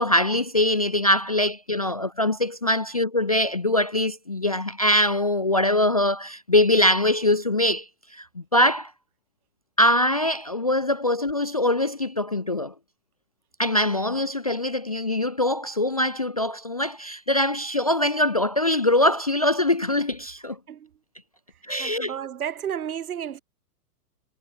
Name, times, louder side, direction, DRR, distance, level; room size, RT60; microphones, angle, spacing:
voice 1, 0.0-8.9 9.8-12.7 13.6-20.6 21.7-22.1, left 1 dB, 25° left, 0.4 m, -23 dB
voice 2, 21.8-23.4, right 9 dB, 65° right, 5.6 m, -32 dB
hypercardioid pair, 175°, 47 cm